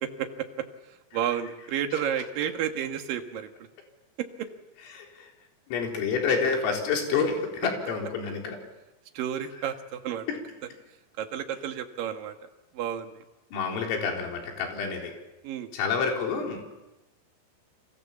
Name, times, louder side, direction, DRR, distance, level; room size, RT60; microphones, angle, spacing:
voice 1, 0.0-3.5 4.2-4.5 9.1-10.3 11.2-13.2 15.4-15.7, right 9 dB, 60° right, 6 dB, 2.6 m, -32 dB
voice 2, 4.9-5.3 5.7-8.6 13.5-15.1 15.7-16.7, left 5 dB, 80° left, 1 dB, 6.6 m, -28 dB
29.5 x 26.5 x 7.4 m, 1.0 s
omnidirectional pair, 5.9 m